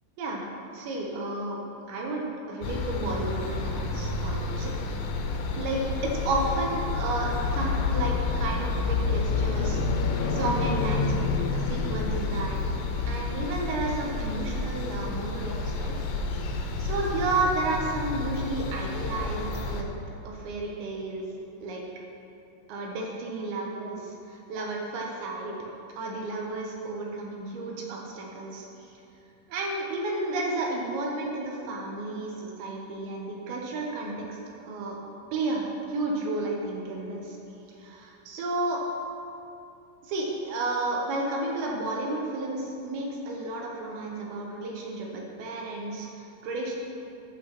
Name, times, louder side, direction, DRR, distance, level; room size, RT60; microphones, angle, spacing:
voice 1, 0.7-1.6 1.9-4.8 5.5-12.6 13.0-15.9 16.8-19.9 20.2-21.2 21.6-21.8 22.7-25.6 26.0-29.0 29.5-35.0 35.3-37.4 37.8-38.8 40.0-46.8, right 2 dB, 75° right, -1 dB, 2.8 m, -32 dB
sound 1, 2.6-19.8, left 4 dB, 85° left, 3.3 m, -29 dB
14.0 x 8.5 x 3.0 m, 2.7 s
omnidirectional pair, 5.8 m